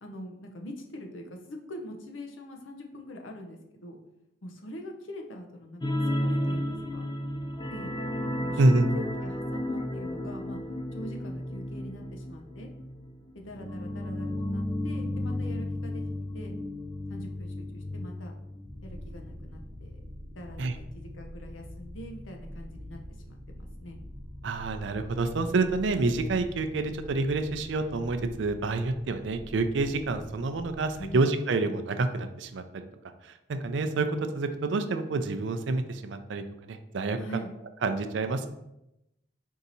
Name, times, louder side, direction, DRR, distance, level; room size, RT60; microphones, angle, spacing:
voice 1, 0.0-4.0 4.4-7.1 7.7-7.9 8.4-10.6 10.9-12.7 13.3-16.0 16.3-16.5 17.1-18.3 18.8-20.0 20.4-24.0 31.0-31.2 37.2-37.5, equal, 80° left, 3 dB, 0.7 m, -43 dB
sound 1, 5.8-19.1 19.4-19.6 19.9-20.0, left 1 dB, 20° left, 0.3 m, -33 dB
voice 2, 8.6-8.9 20.6-20.7 24.4-32.9 33.2-37.4 37.8-38.5, right 3 dB, 65° right, 8 dB, 0.4 m, -28 dB
sound 2, 18.6-31.1, equal, 20° right, 0.6 m, -45 dB
4.6 x 2.7 x 4.0 m, 0.87 s
head